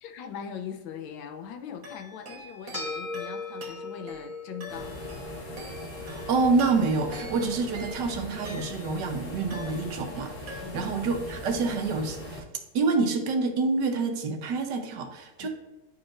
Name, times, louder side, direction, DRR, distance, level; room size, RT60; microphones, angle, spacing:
voice 1, 0.0-5.0 10.6-11.2 15.4-15.5, left 8 dB, 85° left, 6 dB, 1.5 m, -41 dB
sound 1, 1.8-9.1 9.5-10.2 10.5-11.1, equal, 50° right, 1.5 m, -46 dB
sound 2, 2.7-11.3, left 3 dB, 10° right, 2.1 m, -41 dB
sound 3, 4.7-12.4, left 1 dB, 45° left, 1.3 m, -40 dB
voice 2, 6.1-12.4 12.7-15.5, right 4 dB, 70° right, 5 dB, 1.3 m, -27 dB
10.5 x 4.3 x 2.5 m, 1.1 s
omnidirectional pair, 2.1 m